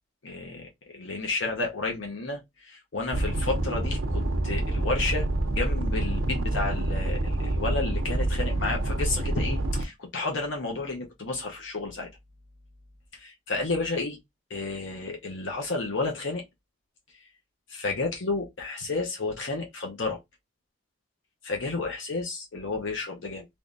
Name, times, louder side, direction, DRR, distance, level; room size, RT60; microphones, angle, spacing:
voice 1, 0.2-12.1 13.1-14.2 14.5-16.4 17.2-17.3 17.7-20.2 21.4-23.5, left 3 dB, 70° left, 0.8 m, -31 dB
sound 1, 3.1-9.8, right 1 dB, 80° right, 0.6 m, -27 dB
3.5 x 3.1 x 2.5 m
head